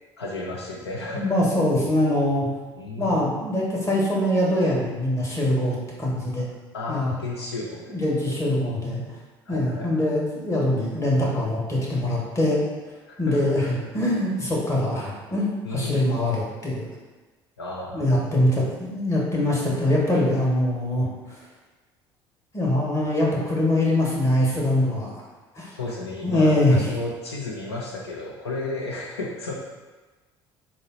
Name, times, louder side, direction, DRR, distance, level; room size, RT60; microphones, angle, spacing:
voice 1, 0.2-1.2 2.8-3.2 6.7-8.0 9.5-10.1 13.1-13.8 15.6-16.4 17.6-18.3 25.7-29.5, left 3 dB, 85° left, -2 dB, 0.4 m, -33 dB
voice 2, 1.2-2.5 3.0-6.5 6.9-7.1 7.9-9.0 9.5-12.6 13.2-16.9 17.9-21.4 22.5-25.2 25.5-25.7 26.2-26.8, left 1 dB, 20° left, -5 dB, 1.3 m, -23 dB
3.7 x 2.0 x 4.0 m, 1.2 s
hypercardioid pair, 60°, 13 cm